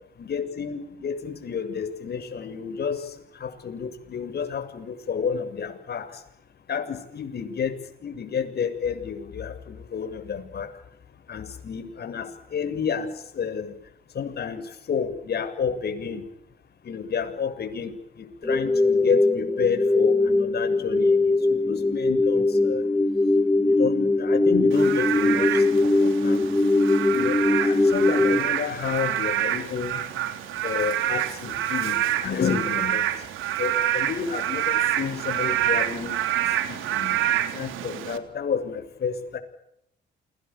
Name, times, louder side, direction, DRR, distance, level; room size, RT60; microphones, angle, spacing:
voice 1, 0.2-3.0 3.4-6.1 6.7-7.7 8.0-9.5 9.9-10.7 11.3-13.1 13.3-13.7 14.2-14.6 14.9-16.2 16.9-17.9 18.4-22.8 23.6-25.8 26.2-26.5 27.1-30.0 30.6-33.1 33.6-36.1 36.7-37.1 37.5-39.4, left 6 dB, 55° left, 8 dB, 7.3 m, -30 dB
sound 1, 18.4-28.4, left 2 dB, 15° left, 2.0 m, -21 dB
Frog / Rain, 24.7-38.2, right 12 dB, 85° right, 3.5 m, -27 dB
29.0 x 24.0 x 7.3 m, 0.78 s
cardioid pair, 90°, 20 cm